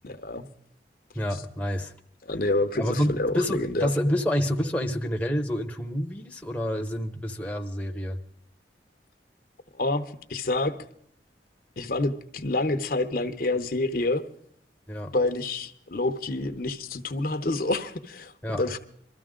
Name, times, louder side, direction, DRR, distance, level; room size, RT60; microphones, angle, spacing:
voice 1, 0.0-0.5 2.3-3.9 9.8-10.8 11.8-14.2 15.1-18.8, left 2 dB, 50° left, 8 dB, 0.8 m, -28 dB
voice 2, 1.1-1.9 2.7-8.2 14.9-15.1 18.4-18.6, equal, 5° left, 3 dB, 0.9 m, -28 dB
22.5 x 13.5 x 3.7 m, 0.67 s
head